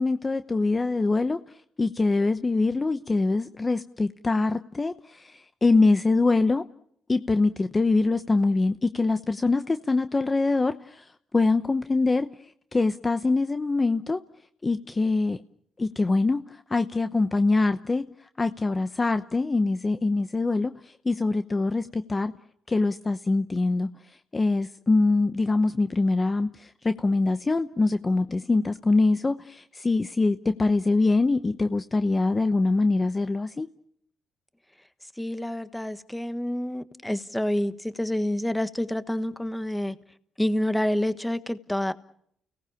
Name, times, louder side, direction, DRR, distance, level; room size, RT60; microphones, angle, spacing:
voice 1, 0.0-1.4 1.8-6.6 7.1-12.3 12.7-14.2 14.6-15.4 15.8-18.0 18.4-22.3 22.7-33.7, left 3 dB, 25° left, 0.9 m, -24 dB
voice 2, 35.2-40.0 40.4-41.9, left 1 dB, 5° left, 1.3 m, -28 dB
30.0 x 18.0 x 7.1 m
cardioid pair, 90°, 0 cm